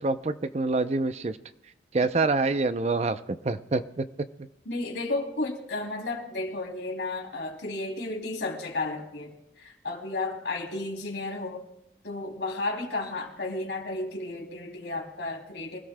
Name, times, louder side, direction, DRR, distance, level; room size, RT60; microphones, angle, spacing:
voice 1, 0.0-1.4 1.9-4.1 4.4-4.5, right 3 dB, 35° right, 12 dB, 0.5 m, -26 dB
voice 2, 4.6-11.6 12.0-15.8, left 2 dB, 85° left, 1 dB, 2.9 m, -33 dB
25.5 x 16.5 x 2.2 m, 0.82 s
head